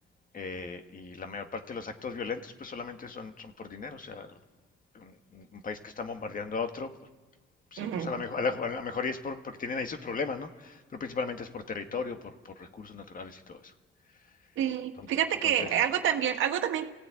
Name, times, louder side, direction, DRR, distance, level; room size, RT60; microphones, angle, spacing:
voice 1, 0.3-4.4 4.9-6.9 7.7-13.7 14.2-14.4 15.0-15.1 15.4-15.7, left 4 dB, 45° left, 7 dB, 1.9 m, -36 dB
voice 2, 7.8-8.1 14.6-16.9, right 10 dB, 85° right, 5 dB, 1.7 m, -28 dB
28.5 x 16.5 x 9.0 m, 1.3 s
cardioid pair, 90°, 20 cm